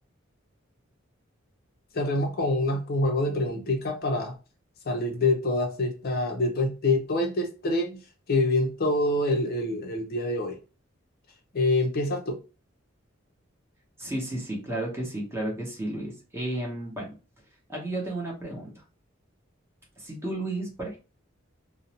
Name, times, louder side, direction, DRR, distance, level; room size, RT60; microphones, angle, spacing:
voice 1, 1.9-4.4 4.9-8.0 8.3-10.6 11.5-12.4, left 2 dB, 50° left, 0.5 m, -26 dB
voice 2, 14.0-17.1 17.7-18.8 20.0-21.0, right 1 dB, 10° right, 0.8 m, -33 dB
2.5 x 2.0 x 2.8 m
head